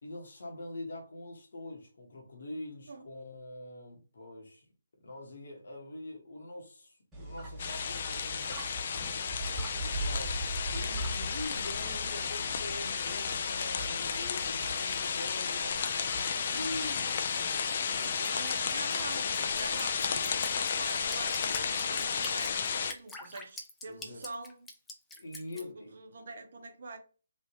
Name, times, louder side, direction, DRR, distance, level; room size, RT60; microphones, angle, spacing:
voice 1, 0.0-4.7 5.0-8.7 9.6-15.8 16.5-17.3 17.9-18.6 23.9-24.2 25.1-25.9, left 2 dB, 65° left, 1.1 m, -44 dB
sound 1, 7.1-17.6, right 1 dB, 10° right, 1.5 m, -41 dB
sound 2, 7.6-22.9, left 6 dB, 50° left, 0.4 m, -33 dB
voice 2, 9.4-9.8 17.0-17.2 17.8-24.7 25.5-27.0, right 3 dB, 55° right, 0.9 m, -46 dB
Drip, 18.0-25.6, left 2 dB, 10° left, 0.6 m, -45 dB
3.3 x 2.7 x 2.9 m
figure-of-eight pair, 140°, 0 cm